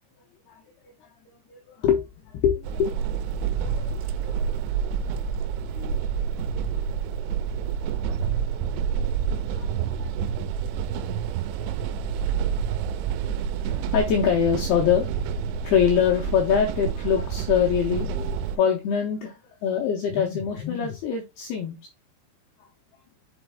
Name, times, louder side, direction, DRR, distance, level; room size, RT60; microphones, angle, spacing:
voice 1, 1.5-2.1 2.3-2.9 3.6-4.3 5.7-5.9 8.0-8.1 9.6-9.7 13.6-15.1 15.6-21.7, left 8 dB, 85° left, 1 dB, 2.2 m, -24 dB
sound 1, 2.6-18.6, right 7 dB, 85° right, 2.7 m, -28 dB
7.1 x 4.1 x 3.4 m, 0.24 s
omnidirectional pair, 5.6 m